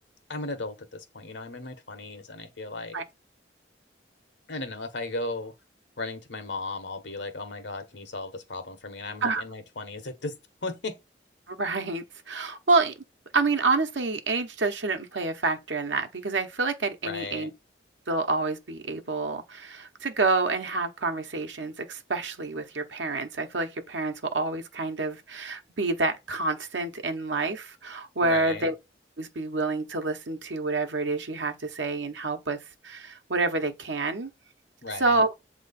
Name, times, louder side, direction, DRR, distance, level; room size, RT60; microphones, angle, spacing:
voice 1, 0.3-3.0 4.5-5.5 6.0-10.9 17.0-17.5 28.2-28.7 34.8-35.2, left 2 dB, 85° left, 1.2 m, -36 dB
voice 2, 11.5-12.9 13.3-17.5 18.1-28.7 29.2-34.3 35.0-35.3, right 3 dB, 90° right, 1.0 m, -28 dB
7.5 x 3.1 x 4.2 m
head